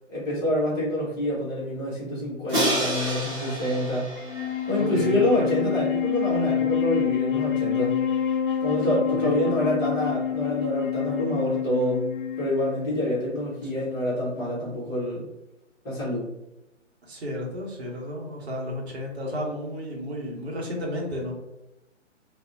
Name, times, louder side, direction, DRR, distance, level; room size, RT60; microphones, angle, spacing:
voice 1, 0.1-4.1 4.7-8.0 8.6-15.3 15.8-16.3, equal, 15° left, -8 dB, 0.8 m, -27 dB
Crash cymbal, 2.5-5.5, right 1 dB, 40° right, 1.1 m, -29 dB
Wind instrument woodwind instrument, 4.2-13.7, left 9 dB, 45° left, 0.4 m, -27 dB
voice 2, 4.8-5.5 9.2-9.5 13.0-13.2 13.7-13.9 17.1-21.3, left 1 dB, 55° right, -1 dB, 0.8 m, -33 dB
2.5 x 2.1 x 2.4 m, 0.90 s
figure-of-eight pair, 125°, 37 cm